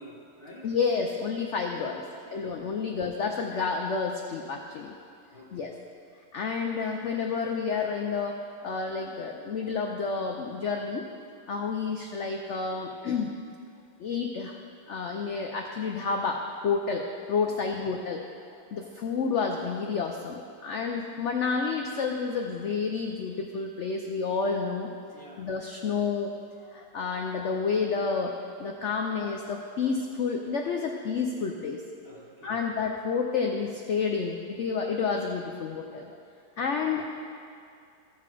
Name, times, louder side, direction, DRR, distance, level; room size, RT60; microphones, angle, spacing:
voice 1, 0.0-0.7 2.0-2.5 5.3-5.8 17.4-17.8 25.1-25.5 32.0-32.7 36.6-37.1, equal, 35° left, -7 dB, 1.3 m, -50 dB
voice 2, 0.6-2.0 2.3-4.9 5.5-5.7 6.3-8.4 8.6-11.0 11.5-13.3 14.0-14.6 14.9-18.2 18.5-24.9 25.4-26.3 26.7-28.3 28.6-31.8 32.4-36.2 36.6-37.1, left 5 dB, 65° left, 2 dB, 0.7 m, -30 dB
15.5 x 5.9 x 4.8 m, 2.4 s
omnidirectional pair, 1.9 m